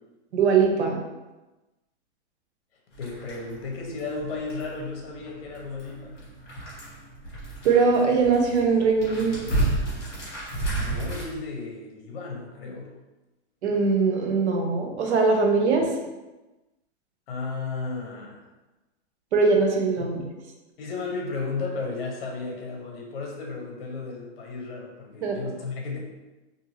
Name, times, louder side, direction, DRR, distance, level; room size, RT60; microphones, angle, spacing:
voice 1, 0.3-1.0 7.6-9.5 13.6-15.9 19.3-20.2 25.2-25.4, right 4 dB, 80° right, 2 dB, 0.7 m, -21 dB
sound 1, 2.9-11.2, right 2 dB, 30° left, 1.3 m, -32 dB
voice 2, 3.0-6.2 10.7-12.9 15.8-15.9 17.3-18.4 20.0-20.1 20.8-26.0, left 4 dB, 60° left, 0 dB, 1.0 m, -34 dB
2.7 x 2.6 x 2.8 m, 1.1 s
hypercardioid pair, 155°, 34 cm